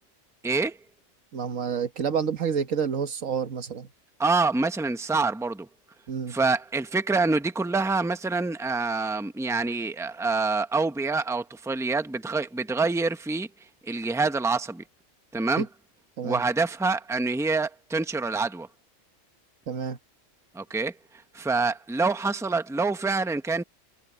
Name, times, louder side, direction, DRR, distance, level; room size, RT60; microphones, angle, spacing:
voice 1, 0.4-0.8 4.2-5.7 6.3-13.5 13.8-14.8 15.3-15.7 16.2-18.7 20.5-20.9 21.3-23.6, right 3 dB, 5° right, 0.8 m, -26 dB
voice 2, 1.3-3.9 6.1-6.4 15.6-15.7 16.2-16.4 19.7-20.0, right 7 dB, 90° right, 1.7 m, -29 dB
omnidirectional pair, 1.3 m